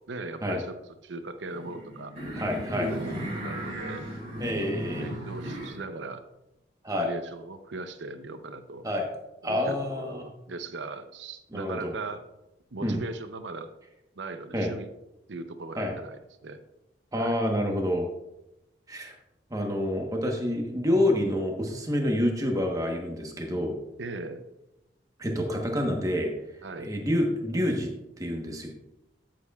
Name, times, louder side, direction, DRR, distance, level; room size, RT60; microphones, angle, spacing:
voice 1, 0.1-0.8 1.0-2.1 2.9-3.0 3.3-4.1 4.6-6.2 6.9-8.9 9.4-12.2 12.7-13.7 14.1-14.9 15.3-16.6 17.2-17.3 24.0-24.5 26.6-26.9, right 3 dB, 75° right, 9 dB, 0.7 m, -39 dB
sound 1, 1.5-5.8, equal, 35° right, 3.4 m, -35 dB
voice 2, 2.4-3.0 4.4-5.1 6.8-7.1 8.8-9.1 9.4-10.2 11.5-11.9 12.8-13.0 14.5-14.7 15.8-15.9 17.1-18.1 18.9-19.1 19.5-23.7 25.2-26.3 26.8-27.9 28.2-28.7, left 1 dB, 20° right, 2 dB, 1.1 m, -28 dB
12.5 x 7.5 x 2.4 m, 0.92 s
head